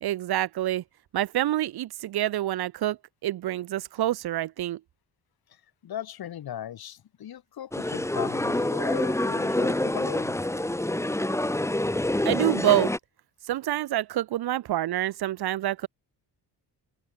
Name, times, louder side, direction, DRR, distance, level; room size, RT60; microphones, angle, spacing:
voice 1, 0.0-0.8 1.1-3.0 3.2-4.8 12.2-12.9 13.5-15.9, right 13 dB, 70° right, 1.1 m, -27 dB
voice 2, 5.8-10.4, left 10 dB, 65° left, 4.3 m, -38 dB
sound 1, 7.7-13.0, left 1 dB, 5° left, 4.1 m, -27 dB
open air
cardioid pair, 145°, 40 cm